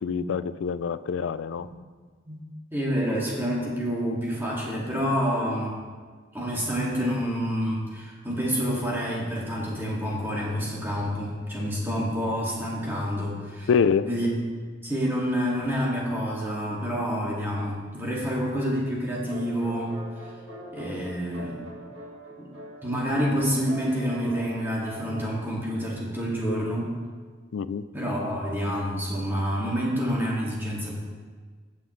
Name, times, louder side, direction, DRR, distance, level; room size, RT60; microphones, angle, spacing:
voice 1, 0.0-1.7 13.7-14.1 27.5-27.8, left 6 dB, 75° left, 15 dB, 0.3 m, -25 dB
voice 2, 2.7-5.8 6.3-13.7 14.0-14.3 14.8-20.0 20.7-21.6 22.4-22.5 22.8-27.0 27.9-30.9, equal, 10° right, -5 dB, 2.1 m, -28 dB
sound 1, 19.2-25.5, right 1 dB, 70° right, 1.8 m, -42 dB
16.5 x 5.6 x 3.2 m, 1.5 s
head